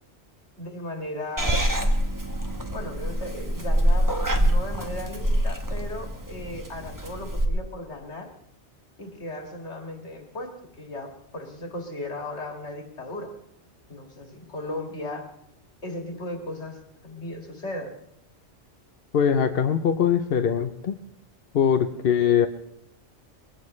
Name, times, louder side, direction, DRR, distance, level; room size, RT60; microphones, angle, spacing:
voice 1, 0.6-1.7 2.7-8.3 9.0-13.3 13.9-15.3 15.8-16.8 17.0-17.9, left 1 dB, 80° left, 2 dB, 2.4 m, -36 dB
Purr / Meow, 1.4-7.4, right 1 dB, 15° right, 1.2 m, -25 dB
voice 2, 19.1-21.0 21.5-22.5, left 8 dB, 60° left, 6 dB, 0.9 m, -22 dB
21.5 x 16.5 x 3.2 m, 0.76 s
omnidirectional pair, 1.2 m